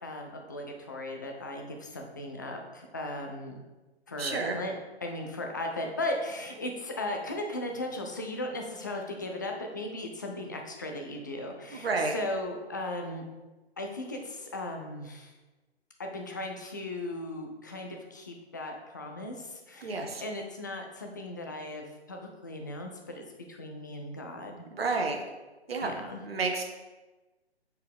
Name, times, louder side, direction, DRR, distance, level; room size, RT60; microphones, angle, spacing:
voice 1, 0.0-3.6 4.1-4.7 5.0-13.2 13.8-15.3 16.0-24.7 25.8-26.2, left 1 dB, 20° left, 2 dB, 0.4 m, -37 dB
voice 2, 4.2-4.6 11.7-12.1 19.8-20.2 24.7-25.2 25.7-25.9 26.2-26.7, right 3 dB, 65° right, 3 dB, 1.2 m, -30 dB
7.1 x 4.5 x 3.5 m, 1.2 s
figure-of-eight pair, 145°, 33 cm